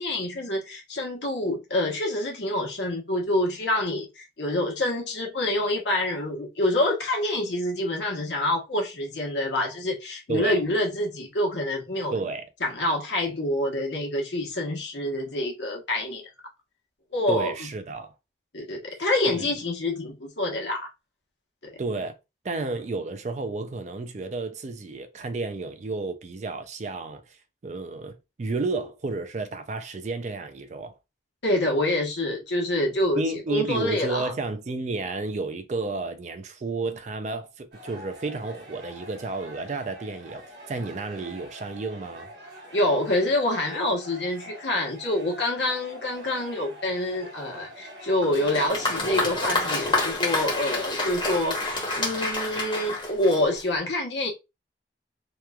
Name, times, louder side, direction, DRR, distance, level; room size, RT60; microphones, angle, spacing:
voice 1, 0.0-12.2 12.6-16.2 17.1-17.5 18.5-20.9 31.4-33.2 33.5-34.3 42.7-54.3, left 1 dB, 75° left, 1.0 m, -26 dB
voice 2, 10.3-10.6 12.1-12.5 17.3-18.1 19.3-19.5 21.8-22.1 22.4-27.4 27.6-31.0 33.1-42.3, right 3 dB, 40° right, 0.4 m, -32 dB
sound 1, 37.7-48.7, equal, 70° right, 1.2 m, -45 dB
Applause, 48.2-53.8, left 2 dB, 25° left, 0.8 m, -28 dB
2.9 x 2.2 x 2.3 m
head